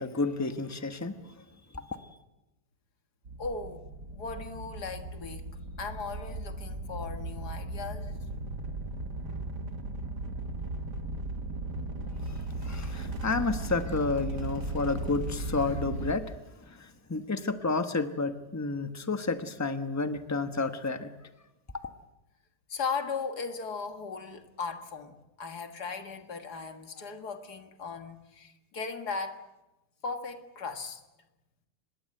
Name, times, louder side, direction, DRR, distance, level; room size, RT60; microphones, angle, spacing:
voice 1, 0.0-1.4 1.7-2.1 12.2-21.1, left 3 dB, 10° left, 1.0 m, -31 dB
sound 1, 3.2-16.1, right 2 dB, 80° right, 2.8 m, -37 dB
voice 2, 3.4-3.9 4.1-5.5 5.8-8.1 22.7-29.4 30.0-31.0, left 4 dB, 70° left, 2.3 m, -37 dB
25.5 x 21.0 x 7.8 m
omnidirectional pair, 1.8 m